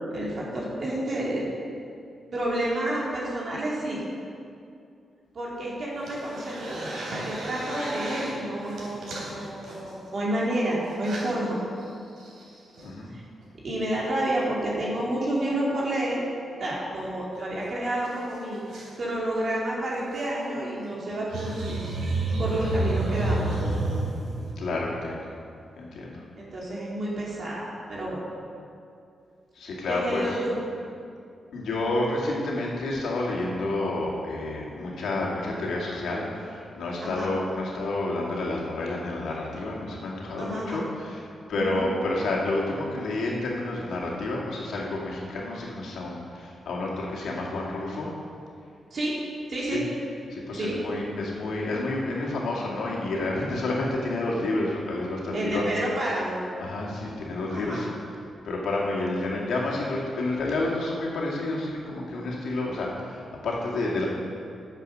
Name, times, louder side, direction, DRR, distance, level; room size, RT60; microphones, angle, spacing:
voice 1, 0.1-1.5 2.3-4.0 5.3-11.6 13.1-13.2 13.6-16.2 16.6-21.9 22.4-23.7 26.4-28.2 29.9-30.6 37.0-37.3 40.4-40.8 41.5-41.9 48.9-49.2 49.5-49.9 50.5-50.8 55.3-56.4 57.5-57.8, right 1 dB, 45° right, -5 dB, 2.8 m, -30 dB
sound 1, 6.0-8.3 8.6-10.4 10.9-11.3 11.8-11.9 12.2-12.9 15.0-15.2 17.0-17.1 17.3-17.4 17.6-17.7 18.1-18.9 20.0-20.2 21.1-24.5, right 2 dB, 70° right, 3.1 m, -31 dB
voice 2, 12.8-13.1 22.6-22.7 24.6-25.3 25.8-26.2 29.5-30.4 31.5-41.2 41.5-48.1 49.7-49.8 50.3-55.7 56.6-57.9 58.4-64.1, left 2 dB, 85° left, -3 dB, 2.3 m, -29 dB
9.8 x 7.5 x 6.4 m, 2.4 s
wide cardioid pair, 140°, 0 cm